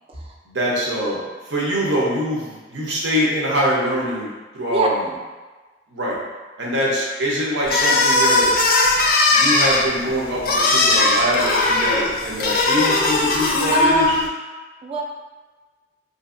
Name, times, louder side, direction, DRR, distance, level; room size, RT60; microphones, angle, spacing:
voice 1, 0.5-5.1 5.9-6.2 6.6-8.5 9.3-14.0, equal, 80° right, -5 dB, 0.8 m, -24 dB
sound 1, 7.6-14.3, left 2 dB, 55° left, 0.4 m, -18 dB
voice 2, 13.7-14.1 14.8-15.0, right 1 dB, 30° right, 0 dB, 0.4 m, -20 dB
2.8 x 2.6 x 2.5 m, 1.3 s
head